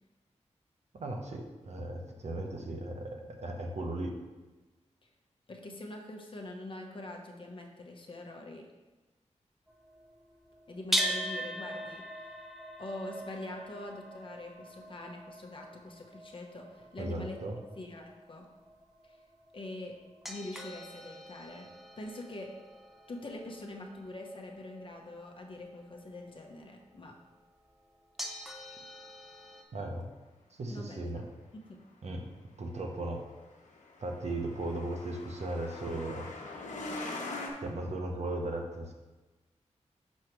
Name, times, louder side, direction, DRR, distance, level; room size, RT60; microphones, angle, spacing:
voice 1, 0.9-4.1 17.0-17.6 29.7-30.0 30.6-31.2 32.0-32.2 32.6-33.2 34.0-36.3 37.6-38.9, right 2 dB, 65° right, 2 dB, 1.0 m, -36 dB
voice 2, 5.5-8.7 10.7-12.3 12.8-17.4 17.8-18.5 19.0-19.2 19.5-19.9 20.3-21.7 22.0-22.5 23.1-27.1 30.7-31.0 31.5-31.8, left 1 dB, 45° left, 1 dB, 0.9 m, -44 dB
sound 1, 9.7-25.8 26.8-26.9 28.2-29.6, equal, ahead, 0.6 m, -41 dB
Truck, 33.4-37.5, left 2 dB, 90° left, 0.9 m, -42 dB
6.3 x 3.2 x 5.9 m, 1.2 s
wide cardioid pair, 115°, 12 cm